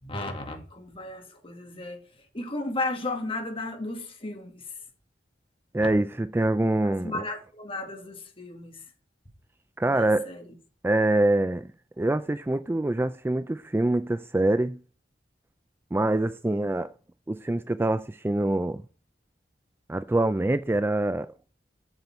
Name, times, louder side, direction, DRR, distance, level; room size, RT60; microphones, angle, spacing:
voice 1, 0.0-2.0 2.3-4.6 5.8-5.9 6.8-8.8 9.8-10.5, left 2 dB, 30° left, 2.1 m, -34 dB
voice 2, 5.7-7.2 9.8-10.3 10.8-11.7 12.0-14.8 15.9-16.9 17.3-18.8 19.9-21.3, right 2 dB, 15° right, 0.3 m, -25 dB
8.0 x 7.1 x 4.5 m
head